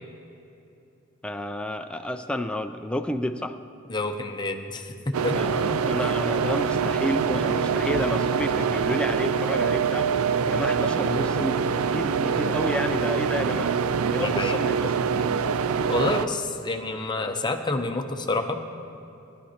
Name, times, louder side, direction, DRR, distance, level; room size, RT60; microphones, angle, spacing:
voice 1, 1.2-3.6 5.3-13.8 14.1-15.1, left 1 dB, 5° left, 6 dB, 0.3 m, -31 dB
voice 2, 3.9-5.4 14.2-14.6 15.9-18.6, left 2 dB, 20° left, 5 dB, 0.7 m, -28 dB
sound 1, 5.1-16.3, right 6 dB, 90° right, 0.4 m, -24 dB
18.5 x 11.5 x 2.9 m, 2.8 s
head